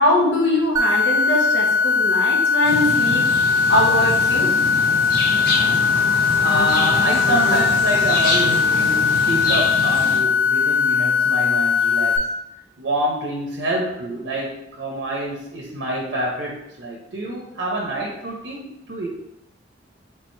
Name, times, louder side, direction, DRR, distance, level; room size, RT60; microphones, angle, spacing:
voice 1, 0.0-3.3 3.7-4.5, left 1 dB, 90° left, -2 dB, 1.0 m, -21 dB
sound 1, 0.8-12.2, left 5 dB, 15° right, 0.3 m, -19 dB
sound 2, 2.6-10.2, left 2 dB, 55° left, 0.7 m, -26 dB
voice 2, 6.4-12.3 12.8-19.1, right 1 dB, 70° right, -2 dB, 0.6 m, -27 dB
3.2 x 3.2 x 3.1 m, 0.85 s
head